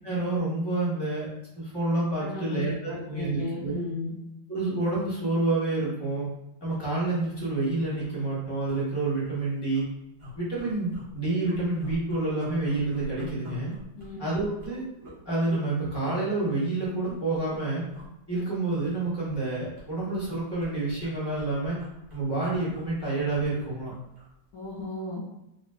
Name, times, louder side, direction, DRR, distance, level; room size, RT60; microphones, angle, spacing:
voice 1, 0.0-1.3 1.5-3.8 4.5-6.3 6.6-9.8 10.3-13.7 14.2-14.8 15.2-17.8 18.3-21.8 22.1-23.9, right 2 dB, 15° left, -8 dB, 0.9 m, -28 dB
voice 2, 2.2-4.1 14.0-14.2 24.5-25.2, left 3 dB, 65° left, -4 dB, 0.9 m, -35 dB
sound 1, 8.0-8.2 8.7-9.3 9.7-9.8 10.2-11.1 11.4-15.6 16.0-16.2 16.8-17.6 17.9-18.1 18.3-19.5 19.8-24.3 24.7-24.8, left 1 dB, 35° right, 0.5 m, -44 dB
3.3 x 2.5 x 2.4 m, 0.87 s
omnidirectional pair, 2.1 m